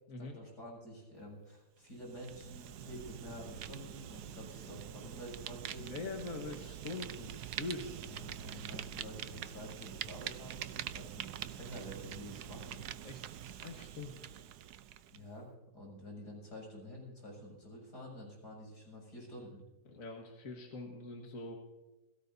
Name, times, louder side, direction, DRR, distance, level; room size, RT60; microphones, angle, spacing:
voice 1, 0.2-5.9 8.0-12.8 13.4-13.6 15.1-19.6, equal, 80° left, -2 dB, 8.1 m, -49 dB
Fire, 1.9-15.2, right 10 dB, 80° right, 1.3 m, -45 dB
voice 2, 5.8-8.0 13.0-14.1 19.9-21.5, left 3 dB, 55° left, 1 dB, 2.0 m, -43 dB
29.5 x 17.5 x 2.8 m, 1.1 s
omnidirectional pair, 1.7 m